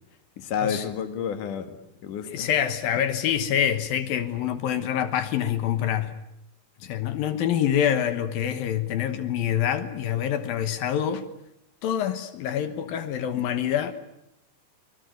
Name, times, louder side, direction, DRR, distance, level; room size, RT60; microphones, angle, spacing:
voice 1, 0.4-2.5, left 7 dB, 65° left, 3.3 m, -30 dB
voice 2, 2.3-6.1 6.8-11.2 11.8-13.9, left 9 dB, 80° left, 3.0 m, -26 dB
25.0 x 21.0 x 9.3 m
omnidirectional pair, 4.1 m